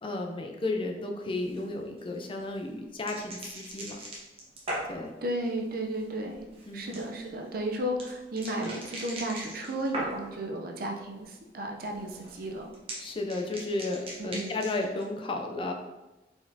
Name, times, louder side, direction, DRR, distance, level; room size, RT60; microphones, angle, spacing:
voice 1, 0.0-4.0 4.9-5.1 6.7-7.0 13.0-15.7, left 2 dB, 30° left, 2 dB, 0.4 m, -33 dB
sound 1, 1.2-10.5 10.8-11.4 11.7-15.0, right 1 dB, 35° right, 0.9 m, -41 dB
voice 2, 5.2-6.4 6.7-12.7 14.2-14.5, right 1 dB, 55° right, 1 dB, 0.6 m, -33 dB
4.3 x 4.1 x 2.7 m, 1.1 s
head